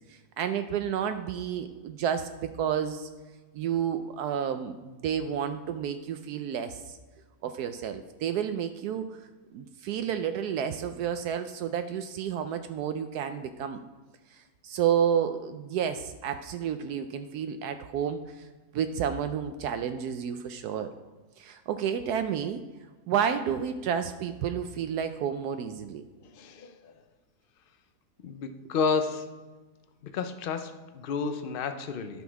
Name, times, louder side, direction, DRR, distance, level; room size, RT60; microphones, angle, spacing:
voice 1, 0.1-3.1 3.5-7.0 7.4-9.1 9.5-13.8 14.3-18.5 18.7-20.9 21.4-22.6 23.1-26.0, right 8 dB, 75° right, 9 dB, 1.1 m, -30 dB
voice 2, 26.2-26.9 28.2-29.3 30.0-32.2, left 5 dB, 65° left, 8 dB, 0.5 m, -31 dB
10.5 x 6.1 x 4.6 m, 1.3 s
omnidirectional pair, 1.7 m